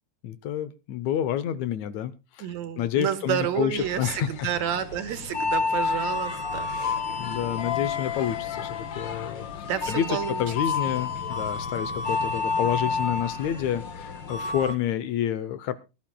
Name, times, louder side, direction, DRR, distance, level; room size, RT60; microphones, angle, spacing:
voice 1, 0.2-2.5 2.8-4.5 6.7-15.7, left 10 dB, 75° left, 14 dB, 1.9 m, -29 dB
voice 2, 2.4-6.7 9.6-10.4 10.8-11.0, right 9 dB, 70° right, 10 dB, 2.3 m, -30 dB
sound 1, 3.8-14.7, left 5 dB, 50° left, 1.5 m, -30 dB
23.0 x 12.0 x 2.2 m, 0.28 s
omnidirectional pair, 3.6 m